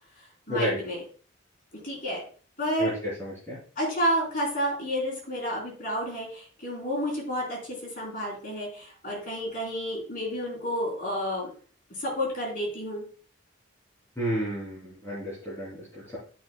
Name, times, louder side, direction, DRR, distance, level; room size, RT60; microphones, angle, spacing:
voice 1, 0.5-1.0 1.7-2.2 2.6-3.0 3.8-11.5 12.0-13.1, equal, 40° left, -3 dB, 4.1 m, -30 dB
voice 2, 2.8-3.6 14.2-16.2, equal, 15° left, -9 dB, 3.1 m, -31 dB
12.0 x 6.1 x 2.3 m, 0.40 s
head